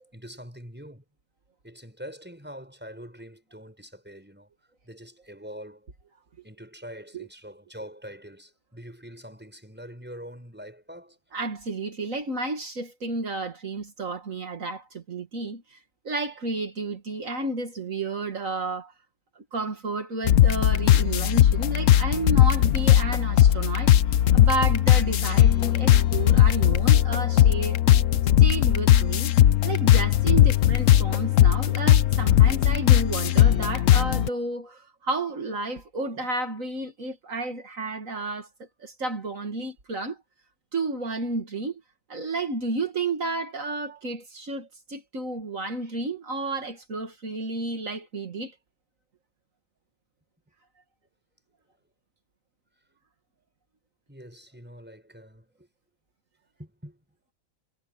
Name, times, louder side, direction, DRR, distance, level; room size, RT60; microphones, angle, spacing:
voice 1, 0.1-1.0 1.6-4.5 4.8-5.9 6.4-11.2 54.1-55.7 56.6-57.0, equal, 5° right, 6.9 m, -44 dB
voice 2, 11.3-15.8 16.0-18.9 19.4-27.8 28.4-29.3 29.6-40.2 40.7-41.8 42.1-48.5, right 3 dB, 70° right, 2.4 m, -32 dB
sound 1, 20.3-34.3, left 11 dB, 70° left, 1.1 m, -19 dB
omnidirectional pair, 1.4 m